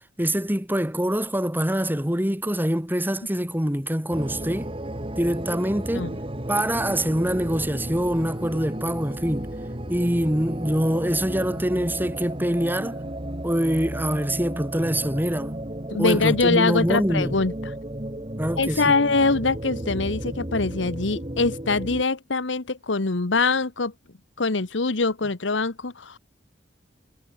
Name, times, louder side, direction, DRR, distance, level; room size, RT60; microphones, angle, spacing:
voice 1, 0.0-4.7 5.2-6.1 6.5-9.5 9.9-13.0 13.4-15.6 16.0-17.4 18.4-19.0, equal, 10° right, 3.9 m, -25 dB
sound 1, 4.1-22.0, right 1 dB, 30° right, 3.1 m, -33 dB
voice 2, 15.9-17.5 18.6-23.9 24.4-26.2, left 3 dB, 90° left, 1.3 m, -23 dB
head